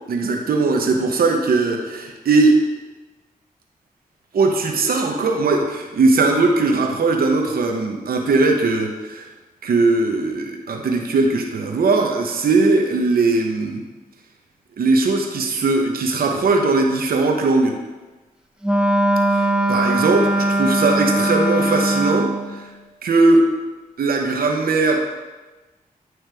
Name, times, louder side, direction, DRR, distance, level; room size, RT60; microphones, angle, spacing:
voice 1, 0.1-2.6 4.3-9.3 9.6-13.8 14.8-17.8 19.4-22.6 23.0-23.5 24.0-25.0, right 3 dB, 75° right, 2 dB, 0.8 m, -19 dB
Wind instrument woodwind instrument, 18.6-22.5, right 1 dB, 5° right, 0.6 m, -19 dB
9.1 x 3.1 x 3.4 m, 1.2 s
cardioid pair, 50°, 15 cm